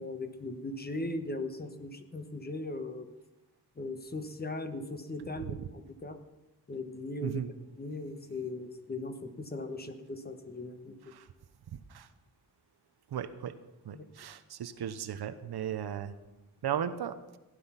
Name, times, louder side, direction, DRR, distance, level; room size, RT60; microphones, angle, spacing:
voice 1, 0.0-3.1 3.8-5.6 6.0-6.2 6.7-7.4 7.8-11.1 13.9-14.0, left 2 dB, 25° left, 8 dB, 1.2 m, -38 dB
voice 2, 13.1-13.6 13.8-16.1 16.6-17.4, right 9 dB, 75° right, 12 dB, 1.0 m, -36 dB
16.0 x 10.0 x 5.8 m, 1.0 s
wide cardioid pair, 120°, 39 cm